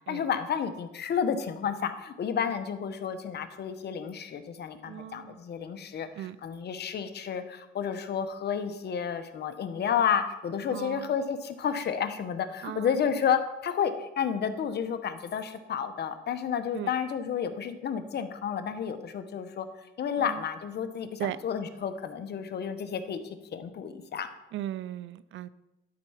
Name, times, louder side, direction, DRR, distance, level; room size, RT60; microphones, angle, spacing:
voice 1, 0.1-19.7 20.0-23.2 23.5-24.3, left 7 dB, 55° left, 9 dB, 1.0 m, -31 dB
voice 2, 4.8-5.4 6.2-6.4 10.7-11.2 12.6-13.1 16.7-16.9 20.2-20.4 21.2-21.4 24.5-25.5, right 12 dB, 75° right, 17 dB, 0.5 m, -37 dB
11.5 x 4.6 x 5.7 m, 1.0 s
cardioid pair, 90°, 20 cm